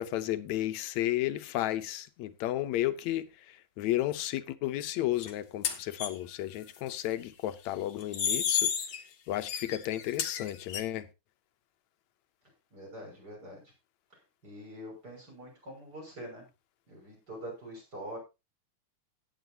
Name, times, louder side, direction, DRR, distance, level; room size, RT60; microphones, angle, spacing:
voice 1, 0.0-8.7 9.3-11.1, left 14 dB, 75° left, 2.1 m, -33 dB
sound 1, 5.2-5.3 5.6-6.1 8.0-9.0 9.4-10.8, left 8 dB, 55° left, 1.7 m, -31 dB
voice 2, 12.7-13.6 14.4-16.5 16.9-18.2, equal, 30° right, 6.7 m, -44 dB
16.0 x 9.5 x 2.8 m
omnidirectional pair, 3.3 m